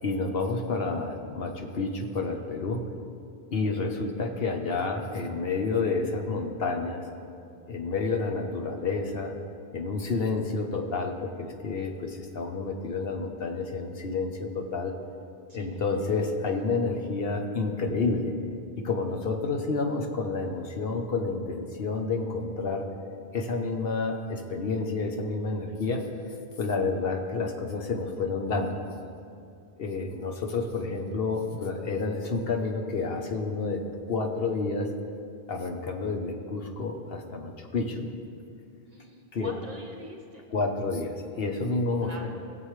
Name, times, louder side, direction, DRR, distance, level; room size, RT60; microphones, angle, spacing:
voice 1, 0.0-2.8 3.5-7.1 7.7-9.4 9.7-14.9 15.5-18.3 18.8-22.9 23.3-26.0 26.6-28.8 29.8-33.8 34.1-34.9 35.5-38.1 39.3-39.5 40.5-42.3, left 3 dB, 70° left, 4 dB, 1.1 m, -29 dB
voice 2, 15.5-16.1 17.8-18.0 38.9-40.5 42.0-42.3, right 1 dB, 40° right, 2 dB, 1.2 m, -45 dB
18.5 x 7.5 x 3.2 m, 2.5 s
omnidirectional pair, 1.0 m